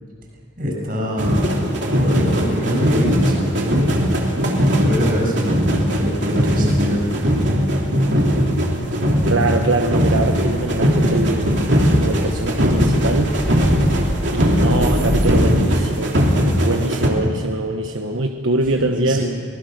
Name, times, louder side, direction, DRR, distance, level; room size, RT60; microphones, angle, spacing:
voice 1, 0.6-1.5 1.8-3.9 4.3-7.1 18.8-19.2, equal, 45° right, 0 dB, 7.4 m, -23 dB
sound 1, 0.9-16.0, equal, 20° left, 3.3 m, -30 dB
sound 2, 1.2-17.1, equal, 65° right, 3.1 m, -19 dB
voice 2, 9.3-11.6 12.0-13.7 14.3-16.2 16.5-19.2, right 2 dB, 85° right, 4 dB, 1.2 m, -23 dB
24.5 x 20.0 x 6.6 m, 2.2 s
head